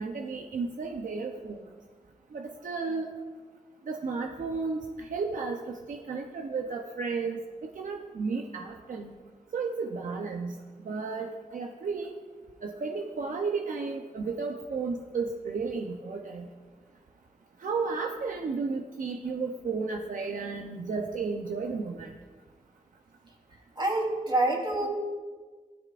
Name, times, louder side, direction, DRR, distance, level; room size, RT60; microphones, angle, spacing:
voice 1, 0.0-1.6 2.3-3.1 3.9-9.1 9.5-10.6 10.8-12.1 12.6-16.5 17.6-22.1, right 4 dB, 75° right, 2 dB, 0.7 m, -33 dB
voice 2, 23.7-24.9, right 2 dB, 35° right, -1 dB, 3.4 m, -26 dB
16.0 x 13.0 x 2.5 m, 1.5 s
wide cardioid pair, 85°, 14 cm